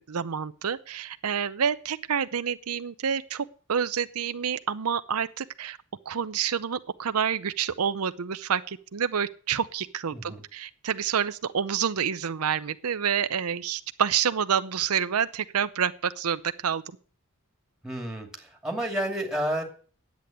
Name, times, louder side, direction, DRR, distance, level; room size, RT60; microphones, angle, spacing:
voice 1, 0.0-5.8 6.1-16.8, right 7 dB, 85° right, 11 dB, 0.7 m, -28 dB
voice 2, 10.1-10.4 17.8-19.6, right 1 dB, 5° right, 2 dB, 2.6 m, -30 dB
10.5 x 8.4 x 9.2 m, 0.44 s
head